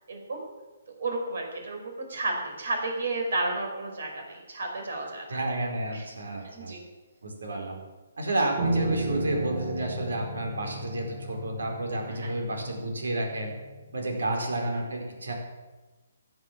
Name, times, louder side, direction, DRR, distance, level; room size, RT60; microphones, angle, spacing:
voice 1, 0.1-0.4 1.0-5.4 5.9-6.1 6.4-6.8 12.1-12.3 14.4-14.5, right 2 dB, 70° right, 2 dB, 5.4 m, -32 dB
voice 2, 5.3-6.7 7.2-7.8 8.2-13.5 13.9-15.3, right 1 dB, 90° right, 2 dB, 4.7 m, -31 dB
Piano, 8.6-13.9, right 2 dB, 40° right, 3.5 m, -34 dB
16.0 x 9.5 x 7.5 m, 1.2 s
hypercardioid pair, 165°, 0 cm